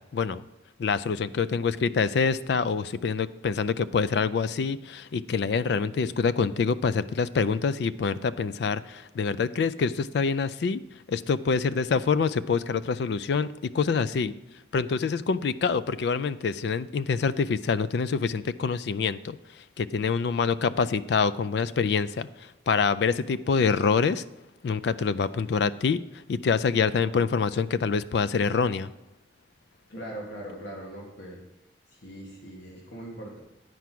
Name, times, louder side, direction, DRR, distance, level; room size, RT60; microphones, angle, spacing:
voice 1, 0.8-10.8 11.1-13.5 13.7-14.3 14.7-19.4 19.8-22.3 22.7-24.2 24.6-26.0 26.3-28.9, left 5 dB, 60° left, 16 dB, 0.3 m, -26 dB
voice 2, 29.9-31.4 31.9-33.4, right 1 dB, 85° left, -2 dB, 1.8 m, -40 dB
9.3 x 4.7 x 6.0 m, 0.98 s
head